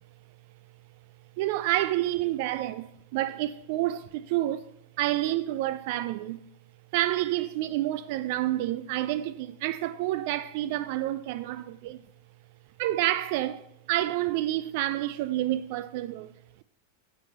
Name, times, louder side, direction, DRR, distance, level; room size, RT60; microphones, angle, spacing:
voice 1, 1.4-4.7 5.0-6.4 6.9-12.0 12.8-16.3, right 14 dB, 50° right, 0.3 m, -29 dB
9.5 x 8.1 x 2.9 m
figure-of-eight pair, 90°, 0 cm